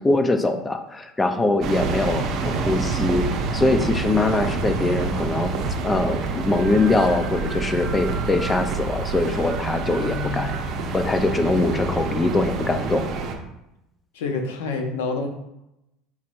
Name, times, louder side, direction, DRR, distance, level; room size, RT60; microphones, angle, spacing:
voice 1, 0.0-3.3 3.5-5.5 5.8-10.6 10.9-13.1, left 2 dB, 20° left, 8 dB, 0.5 m, -22 dB
sound 1, 1.6-13.3, right 4 dB, 55° right, 0.7 m, -27 dB
voice 2, 9.8-10.5 14.1-15.3, left 4 dB, 85° left, 4 dB, 0.7 m, -28 dB
4.3 x 4.2 x 2.5 m, 0.88 s
supercardioid pair, 95°, 0 cm